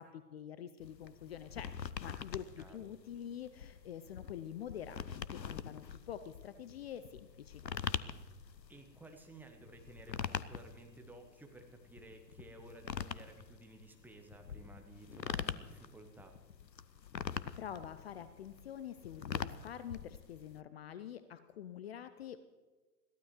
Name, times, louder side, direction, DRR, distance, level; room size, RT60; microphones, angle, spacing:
voice 1, 0.0-1.7 2.0-7.6 17.6-22.4, left 9 dB, 40° left, 13 dB, 0.6 m, -46 dB
sound 1, 0.8-20.6, left 7 dB, 85° left, 0.7 m, -44 dB
voice 2, 8.7-16.4, right 2 dB, 5° right, 3 dB, 1.0 m, -55 dB
21.5 x 15.0 x 3.1 m, 1.4 s
figure-of-eight pair, 110°, 49 cm